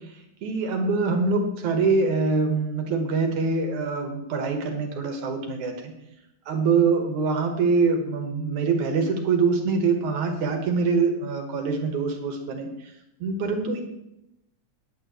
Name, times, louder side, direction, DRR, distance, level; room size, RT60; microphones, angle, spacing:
voice 1, 0.4-5.9 6.5-12.9 13.2-13.8, right 4 dB, 75° right, 3 dB, 2.8 m, -24 dB
19.5 x 8.8 x 3.2 m, 0.85 s
omnidirectional pair, 3.5 m